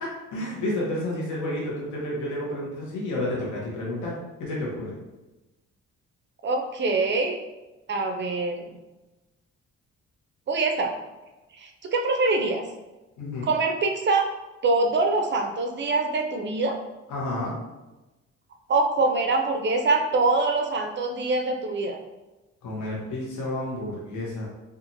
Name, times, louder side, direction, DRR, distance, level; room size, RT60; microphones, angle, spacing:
voice 1, 0.0-4.1 4.4-5.0 13.2-13.5 17.1-17.5 22.6-24.5, left 1 dB, 75° left, -4 dB, 0.9 m, -30 dB
voice 2, 6.4-7.4 7.9-8.8 10.5-10.9 11.6-12.6 13.4-14.3 14.6-16.8 18.7-22.0, right 3 dB, 40° right, 4 dB, 0.4 m, -24 dB
2.8 x 2.4 x 2.5 m, 1.1 s
cardioid pair, 90°, 30 cm